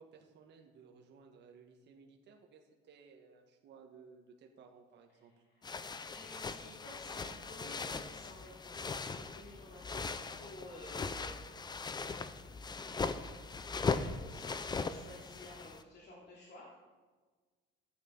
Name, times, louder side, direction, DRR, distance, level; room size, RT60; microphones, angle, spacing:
voice 1, 0.0-5.3, right 5 dB, 55° right, 2 dB, 1.5 m, -58 dB
voice 2, 5.1-16.7, left 1 dB, 55° left, -4 dB, 3.0 m, -54 dB
sound 1, 5.6-15.8, left 4 dB, 20° left, 0.6 m, -39 dB
12.0 x 8.8 x 5.3 m, 1.4 s
cardioid pair, 120°, 21 cm